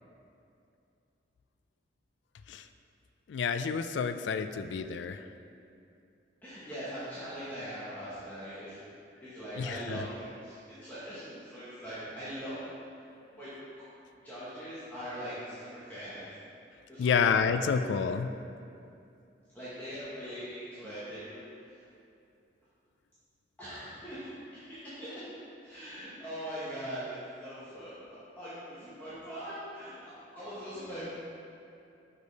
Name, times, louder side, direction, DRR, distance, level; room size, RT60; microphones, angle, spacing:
voice 1, 3.3-5.3 9.5-10.1 17.0-18.3, left 6 dB, 75° left, 10 dB, 0.3 m, -29 dB
voice 2, 6.4-8.8 9.2-12.6 13.4-13.5 14.2-16.3 16.9-17.2 19.5-21.4 21.7-21.8 23.6-25.3 25.6-31.1, equal, 10° left, -13 dB, 1.3 m, -41 dB
6.5 x 5.2 x 4.0 m, 2.5 s
head